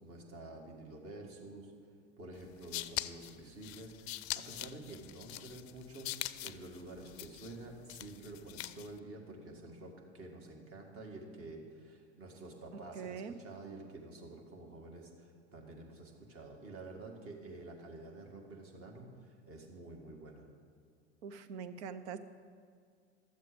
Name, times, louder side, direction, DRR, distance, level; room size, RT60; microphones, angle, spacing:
voice 1, 0.0-1.9 2.2-20.5, right 2 dB, 40° right, 1 dB, 2.1 m, -49 dB
sound 1, 2.4-9.0, left 15 dB, 65° left, 0.5 m, -43 dB
voice 2, 12.9-13.4 21.2-22.2, right 6 dB, 70° right, 10 dB, 0.8 m, -43 dB
12.0 x 7.4 x 5.2 m, 2.1 s
hypercardioid pair, 75°, 35 cm